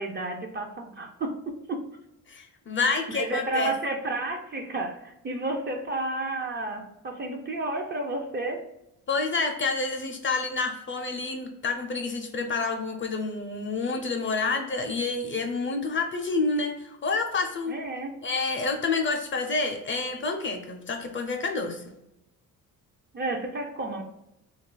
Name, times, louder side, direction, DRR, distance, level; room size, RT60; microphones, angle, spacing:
voice 1, 0.0-1.9 2.8-8.6 17.7-18.2 23.1-24.0, right 2 dB, 30° right, 3 dB, 0.5 m, -31 dB
voice 2, 2.3-3.7 9.1-17.8 18.2-21.8, left 3 dB, 35° left, 4 dB, 0.5 m, -28 dB
3.1 x 2.4 x 3.8 m, 0.84 s
cardioid pair, 120°, 36 cm